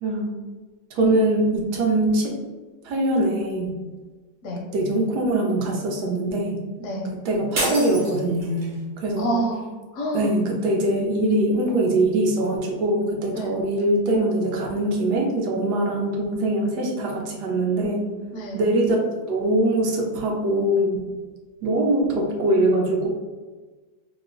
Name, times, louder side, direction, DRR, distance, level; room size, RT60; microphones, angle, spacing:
voice 1, 0.0-0.3 0.9-2.4 2.8-3.7 4.7-6.6 7.1-9.3 10.1-18.1 18.5-19.0 19.3-21.1 21.6-23.1, right 1 dB, 75° right, 0 dB, 1.2 m, -22 dB
sound 1, 7.6-8.8, right 1 dB, 45° right, 1.1 m, -28 dB
voice 2, 9.2-10.4 13.3-13.5 18.3-18.6, right 1 dB, 65° left, 0 dB, 0.8 m, -28 dB
3.1 x 2.0 x 3.6 m, 1.3 s
omnidirectional pair, 1.8 m